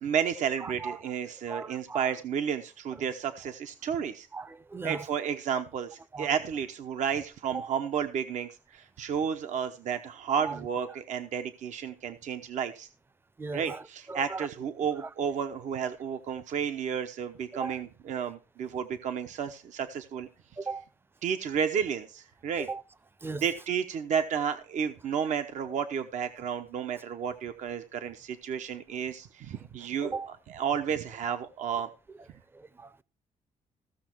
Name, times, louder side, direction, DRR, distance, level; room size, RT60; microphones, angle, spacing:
voice 1, 0.0-4.3 4.8-12.9 13.5-20.3 21.2-22.7 23.3-31.9, right 7 dB, 65° right, 0.9 m, -32 dB
voice 2, 0.6-1.0 1.5-2.1 4.3-5.1 6.1-6.3 7.5-7.7 10.3-10.6 13.4-13.8 14.1-14.5 15.0-15.1 17.6-17.8 20.6-20.8 22.6-22.8 23.2-23.4 30.0-30.3 31.3-31.4 32.5-33.0, right 4 dB, 15° right, 0.6 m, -37 dB
15.5 x 6.4 x 4.5 m
cardioid pair, 130°, 13 cm